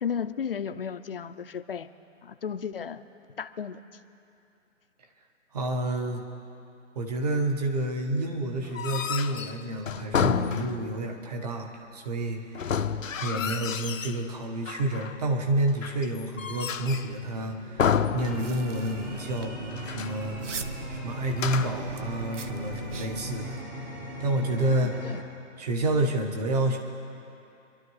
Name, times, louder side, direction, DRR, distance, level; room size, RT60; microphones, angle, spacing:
voice 1, 0.0-1.9 2.2-3.0 3.4-3.8 13.3-13.5 24.7-25.2, left 7 dB, 45° left, 11 dB, 0.6 m, -34 dB
voice 2, 5.5-6.2 6.9-12.8 13.2-20.7 21.0-23.6 24.2-24.9 25.6-26.8, right 1 dB, 30° right, 4 dB, 1.3 m, -29 dB
sound 1, 8.6-11.1 12.5-14.2 14.7-15.3 15.8-17.2 17.8-18.9 19.1-19.2 19.7-20.2 21.3-21.9, left 7 dB, 85° left, 0.8 m, -30 dB
sound 2, 17.0-25.2, left 1 dB, 15° right, 0.9 m, -40 dB
sound 3, 18.2-23.6, right 5 dB, 70° right, 0.9 m, -42 dB
26.0 x 12.0 x 3.2 m, 2.7 s
hypercardioid pair, 160°, 38 cm